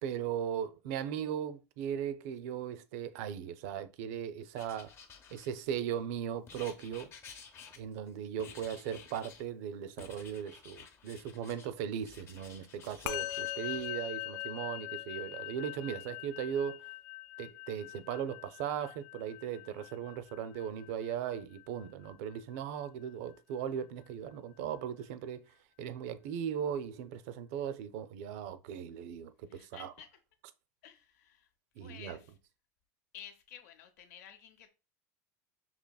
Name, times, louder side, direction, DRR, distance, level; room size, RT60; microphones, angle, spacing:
voice 1, 0.0-4.9 5.3-7.1 7.8-16.8 17.4-25.4 25.8-29.9 31.8-32.2, right 9 dB, 70° right, 0.5 m, -38 dB
Writing, 4.5-5.9 6.5-8.1 8.4-9.5 10.0-11.7 12.0-13.9, left 6 dB, 30° left, 0.7 m, -53 dB
Musical instrument, 13.1-22.6, left 15 dB, 60° left, 0.4 m, -42 dB
voice 2, 29.4-30.1 30.8-31.5 31.8-32.3 33.1-34.7, left 9 dB, 80° left, 0.8 m, -52 dB
5.4 x 2.9 x 2.3 m
supercardioid pair, 145°, 8 cm